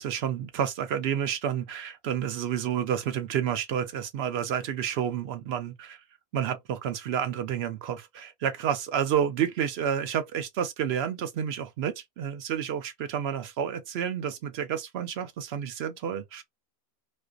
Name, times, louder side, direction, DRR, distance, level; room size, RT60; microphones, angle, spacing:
voice 1, 0.0-6.0 6.3-16.4, right 8 dB, 75° right, 0.8 m, -30 dB
2.5 x 2.2 x 2.3 m
omnidirectional pair, 1.1 m